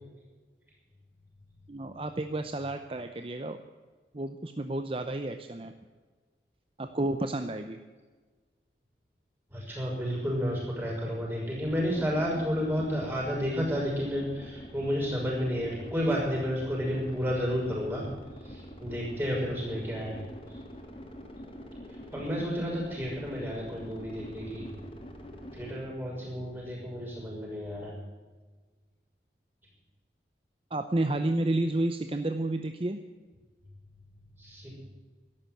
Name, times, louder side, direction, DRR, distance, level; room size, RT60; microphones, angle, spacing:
voice 1, 1.7-3.6 4.1-5.7 6.8-7.8 30.7-33.0, right 2 dB, 30° right, 8 dB, 0.6 m, -31 dB
voice 2, 9.5-18.0 18.4-20.2 20.5-20.6 22.1-24.7 25.5-27.9 34.4-34.8, equal, 10° right, -3 dB, 6.3 m, -31 dB
sound 1, 11.6-25.7, equal, 30° left, 1.9 m, -45 dB
13.0 x 11.5 x 8.0 m, 1.4 s
head